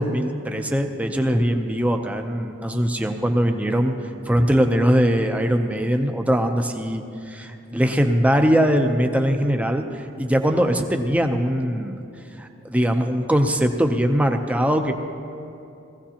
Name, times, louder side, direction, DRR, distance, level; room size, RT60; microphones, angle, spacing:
voice 1, 0.0-3.9 4.3-12.0 12.4-14.9, equal, 5° right, 5 dB, 0.6 m, -21 dB
19.0 x 15.5 x 2.9 m, 2.6 s
head